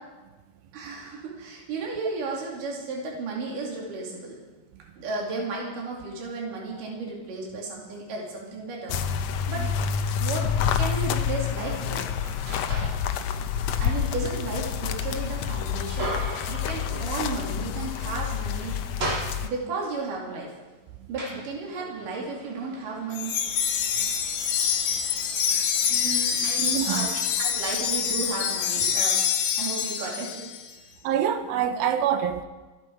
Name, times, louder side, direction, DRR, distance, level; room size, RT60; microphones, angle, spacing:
voice 1, 0.7-4.4 5.0-9.7 10.2-10.5 10.8-12.1 13.8-16.1 16.5-18.8 19.4-20.5 21.1-23.4 26.4-27.1 27.4-29.2 29.6-30.4, right 3 dB, 65° right, -2 dB, 4.3 m, -34 dB
sound 1, 8.9-19.5, left 8 dB, 75° left, 1.6 m, -28 dB
sound 2, 12.2-13.1 13.5-17.6 17.9-18.0 18.4-19.9 20.5-29.2, right 2 dB, 40° right, 3.3 m, -39 dB
Wind chime, 23.1-30.6, left 7 dB, 60° left, 2.7 m, -26 dB
voice 2, 25.9-27.1 31.0-32.5, right 9 dB, 85° right, 9 dB, 2.8 m, -27 dB
28.0 x 10.5 x 4.7 m, 1.2 s
omnidirectional pair, 4.1 m